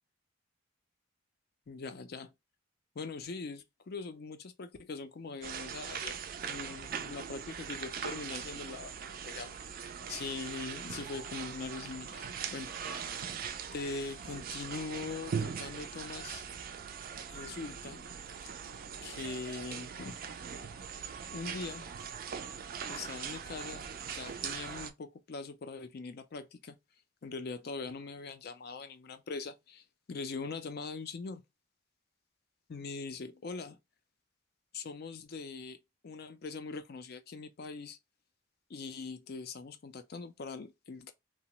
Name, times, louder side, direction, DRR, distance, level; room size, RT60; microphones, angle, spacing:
voice 1, 1.7-2.3 3.0-6.2 6.4-9.5 10.1-12.2 12.5-13.3 13.7-16.4 17.3-18.0 19.0-20.2 21.3-21.9 22.9-26.8 27.2-31.4 32.7-33.8 34.7-35.8 36.0-38.0 38.7-41.1, left 4 dB, 50° left, 0.4 m, -42 dB
sound 1, 5.4-24.9, right 7 dB, 45° right, 0.3 m, -41 dB
2.8 x 2.0 x 2.8 m
head